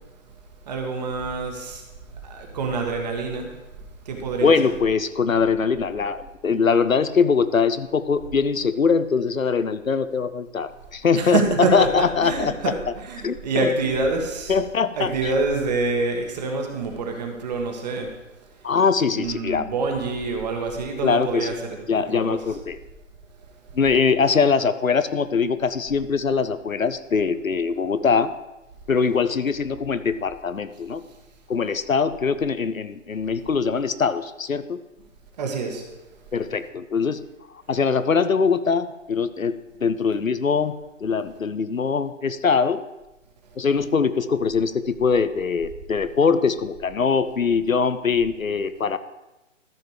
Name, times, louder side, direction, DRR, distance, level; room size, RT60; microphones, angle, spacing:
voice 1, 0.7-1.8 2.2-3.5 4.0-4.7 11.1-14.6 14.9-18.1 19.1-21.8 22.1-22.4 35.4-35.8, right 3 dB, 30° right, 3 dB, 1.6 m, -26 dB
voice 2, 4.4-12.5 13.2-13.7 14.5-15.1 18.6-19.7 21.0-21.5 21.9-22.8 23.7-28.3 28.9-31.0 31.5-34.8 36.3-37.2 37.7-39.5 39.8-40.7 41.0-42.8 43.6-49.0, left 5 dB, 90° left, 13 dB, 0.7 m, -22 dB
13.5 x 5.7 x 4.9 m, 1.0 s
figure-of-eight pair, 140°, 40 cm